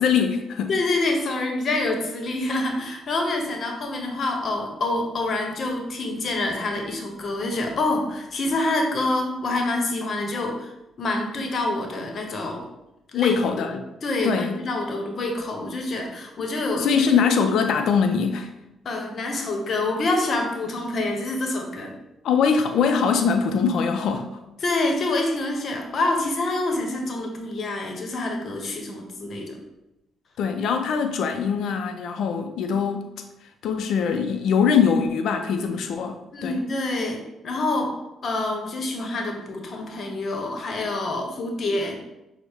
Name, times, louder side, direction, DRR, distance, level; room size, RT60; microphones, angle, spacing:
voice 1, 0.0-0.7 13.1-13.8 14.2-14.6 16.4-16.5 16.8-18.5 22.2-24.3 30.4-33.1 33.6-36.2 36.4-36.6, left 6 dB, 75° left, 6 dB, 0.4 m, -22 dB
voice 2, 0.7-10.7 11.0-12.7 13.1-13.4 13.7-17.0 18.8-21.9 24.6-29.6 36.3-42.0, left 2 dB, 55° left, 3 dB, 0.8 m, -26 dB
6.1 x 2.1 x 3.4 m, 0.92 s
cardioid pair, 85°, 0 cm